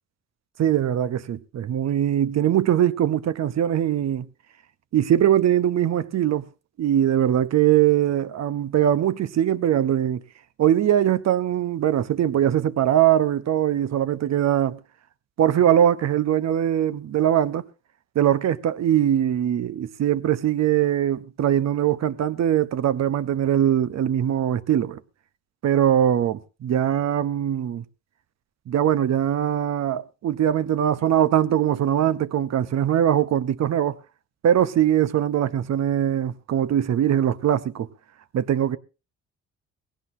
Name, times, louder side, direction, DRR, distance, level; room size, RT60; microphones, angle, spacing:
voice 1, 0.6-4.3 4.9-6.4 6.8-10.2 10.6-14.8 15.4-17.6 18.1-25.0 25.6-27.8 28.7-34.0 34.4-37.9 38.3-38.8, right 10 dB, 60° right, 0.9 m, -21 dB
18.0 x 17.0 x 2.7 m
cardioid pair, 90°, 30 cm